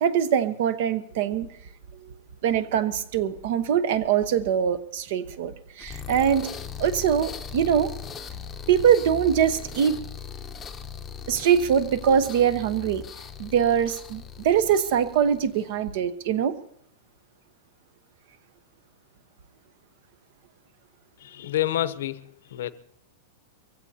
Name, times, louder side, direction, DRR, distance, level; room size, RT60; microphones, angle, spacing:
voice 1, 0.0-1.5 2.4-6.5 6.8-7.9 8.7-10.0 11.3-13.0 13.4-16.5, right 8 dB, 50° right, 1.0 m, -23 dB
sound 1, 5.8-15.8, left 7 dB, 15° left, 0.8 m, -39 dB
voice 2, 21.2-22.7, left 13 dB, 70° left, 0.8 m, -28 dB
23.5 x 16.0 x 2.8 m
supercardioid pair, 165°, 0 cm